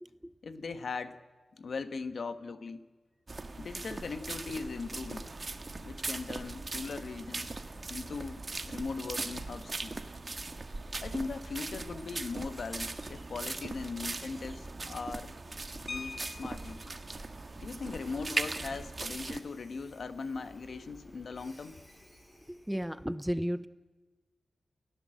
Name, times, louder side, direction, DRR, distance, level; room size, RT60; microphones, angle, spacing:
voice 1, 0.4-1.2 1.5-2.8 3.6-5.3 5.8-7.5 7.9-10.0 11.0-15.3 15.8-16.8 17.6-21.8, left 4 dB, 65° left, 10 dB, 1.4 m, -39 dB
sound 1, 3.3-19.4, right 3 dB, 35° right, 1.6 m, -39 dB
Train, 4.6-23.1, equal, 15° left, 5.8 m, -60 dB
sound 2, 15.9-17.0 18.4-18.5 18.9-19.1 19.4-19.7, left 4 dB, 40° left, 0.8 m, -44 dB
voice 2, 22.5-23.7, equal, 5° right, 14 dB, 0.7 m, -33 dB
29.5 x 16.5 x 7.8 m, 1.3 s
wide cardioid pair, 120°, 0 cm